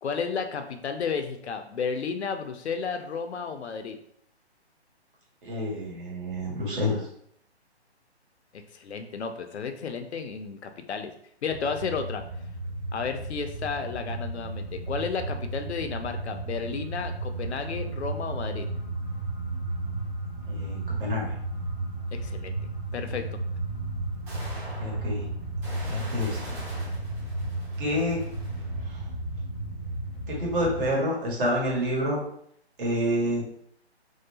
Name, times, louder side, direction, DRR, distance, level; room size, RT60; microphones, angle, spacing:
voice 1, 0.0-4.0 8.5-11.1 11.4-12.2 12.9-18.7 22.1-22.6 22.9-23.4, left 5 dB, 75° left, 6 dB, 0.6 m, -32 dB
voice 2, 5.4-7.0 20.4-21.3 24.8-25.2 25.9-26.6 27.8-28.2 28.8-29.0 30.3-32.2 32.8-33.4, equal, 50° right, -3 dB, 1.4 m, -28 dB
sound 1, 11.4-30.9, right 2 dB, 5° right, 0.6 m, -34 dB
sound 2, 21.5-21.6 23.4-23.5 24.3-28.9, right 1 dB, 25° right, 1.0 m, -44 dB
3.1 x 2.8 x 2.7 m, 0.68 s
hypercardioid pair, 145°, 33 cm